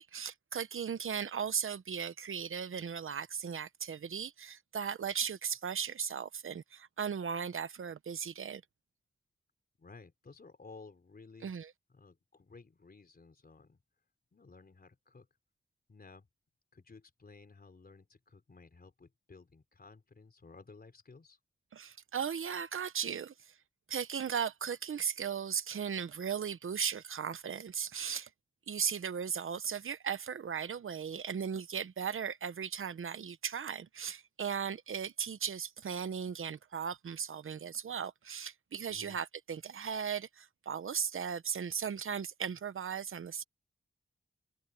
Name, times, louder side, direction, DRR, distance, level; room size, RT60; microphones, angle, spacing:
voice 1, 0.0-8.6 11.4-11.7 21.7-23.5 23.9-28.3 28.7-43.4, right 7 dB, 75° right, 0.9 m, -37 dB
voice 2, 9.8-11.5 11.9-13.8 14.3-15.3 15.9-16.3 16.7-21.4 38.9-39.2, left 4 dB, 45° left, 4.0 m, -55 dB
wide cardioid pair, 110°, 21 cm